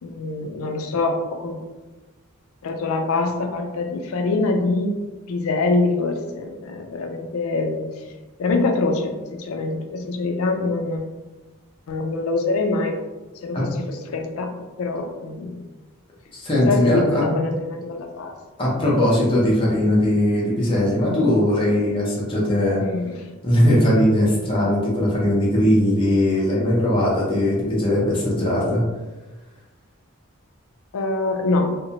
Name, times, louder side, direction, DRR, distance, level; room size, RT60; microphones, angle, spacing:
voice 1, 0.0-1.6 2.6-4.9 5.3-8.1 8.4-11.0 11.9-13.0 13.4-15.6 16.6-18.4 22.8-23.3 30.9-31.7, left 3 dB, 80° left, 4 dB, 0.4 m, -24 dB
voice 2, 16.3-17.2 18.6-22.8 23.4-28.8, left 1 dB, 25° left, -6 dB, 0.6 m, -19 dB
2.6 x 2.1 x 2.7 m, 1.2 s
head